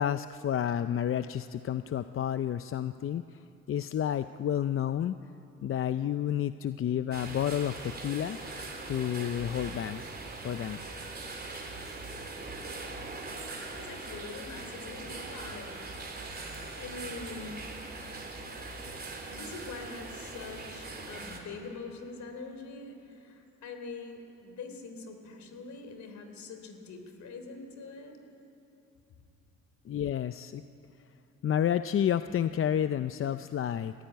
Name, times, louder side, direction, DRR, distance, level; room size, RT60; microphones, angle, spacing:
voice 1, 0.0-3.4 3.7-5.2 5.6-8.4 8.9-10.0 10.4-10.8 29.9-30.6 31.4-33.9, left 10 dB, 45° left, 11 dB, 0.5 m, -30 dB
sound 1, 7.1-21.4, right 3 dB, 30° right, 3.6 m, -41 dB
voice 2, 13.4-15.8 16.2-17.6 18.4-18.6 19.3-28.2, left 4 dB, 65° left, 6 dB, 3.5 m, -44 dB
21.5 x 15.0 x 9.2 m, 2.8 s
cardioid pair, 90°, 30 cm